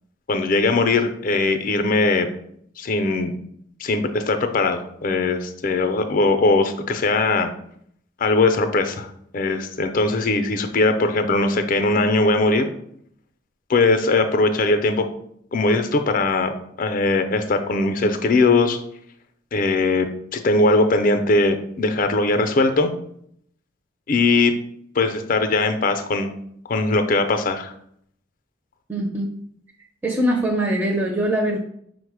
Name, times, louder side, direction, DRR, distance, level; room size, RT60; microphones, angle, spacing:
voice 1, 0.3-2.3 2.8-3.3 3.8-7.5 8.2-9.1 9.3-12.7 13.7-15.1 15.5-16.5 16.8-18.8 19.5-22.9 24.1-24.5 25.0-26.3 26.7-27.7, left 3 dB, 45° left, 8 dB, 0.4 m, -20 dB
voice 2, 28.9-29.3 30.0-31.6, right 1 dB, 10° right, -2 dB, 0.4 m, -22 dB
4.9 x 2.1 x 4.6 m, 0.68 s
head